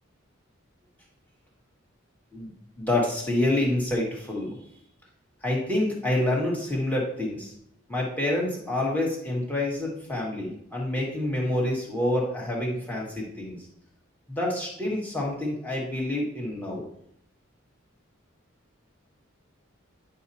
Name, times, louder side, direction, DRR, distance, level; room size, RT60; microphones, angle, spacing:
voice 1, 2.8-4.6 5.4-7.5 7.9-13.6 14.3-16.9, left 1 dB, 10° left, -3 dB, 1.9 m, -27 dB
10.0 x 5.4 x 2.8 m, 0.70 s
head